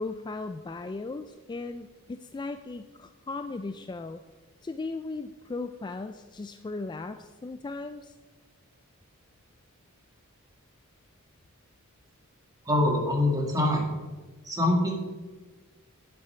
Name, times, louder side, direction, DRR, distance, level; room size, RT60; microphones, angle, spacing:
voice 1, 0.0-4.2 4.6-8.1, left 3 dB, 20° left, 9 dB, 0.3 m, -37 dB
voice 2, 12.7-13.9 14.4-14.9, left 1 dB, 15° right, -1 dB, 2.1 m, -24 dB
9.6 x 8.0 x 5.7 m, 1.3 s
head